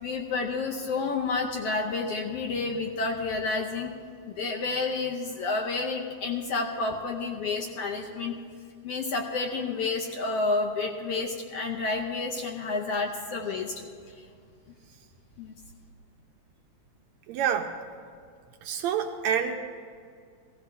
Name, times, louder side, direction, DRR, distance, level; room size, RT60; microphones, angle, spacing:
voice 1, 0.0-3.9 4.3-8.3 8.8-13.7 15.4-15.5, left 3 dB, 70° left, 1 dB, 1.6 m, -30 dB
voice 2, 17.3-17.7 18.6-19.6, right 8 dB, 80° right, 4 dB, 1.7 m, -27 dB
16.5 x 15.0 x 3.5 m, 2.3 s
omnidirectional pair, 3.5 m